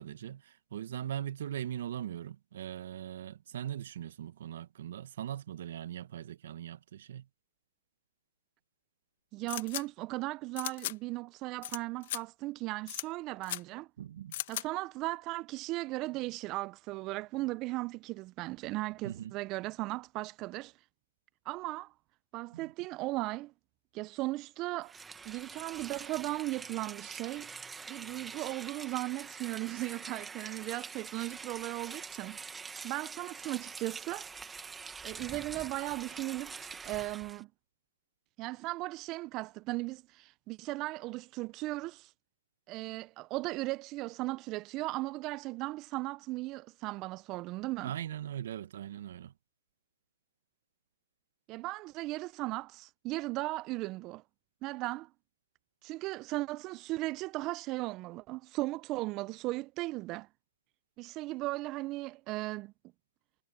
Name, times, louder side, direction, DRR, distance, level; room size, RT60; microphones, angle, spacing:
voice 1, 0.0-7.2 14.0-14.3 19.0-19.3 47.8-49.3, right 10 dB, 60° right, 1.7 m, -40 dB
voice 2, 9.3-13.9 14.5-20.7 21.4-21.9 22.3-23.5 23.9-24.9 25.2-27.5 27.9-32.4 32.8-34.3 35.0-37.5 38.4-42.1 42.7-47.9 51.5-54.2 54.6-55.1 55.8-60.3 61.0-62.7, right 20 dB, 35° right, 1.0 m, -37 dB
sound 1, 9.5-9.8 10.6-10.9 11.6-11.8 12.0-12.2 12.9-13.0 13.4-13.6 14.3-14.6, left 15 dB, 55° left, 1.9 m, -36 dB
Rain, 24.8-37.4, right 5 dB, 10° right, 2.0 m, -45 dB
hypercardioid pair, 125°, 0 cm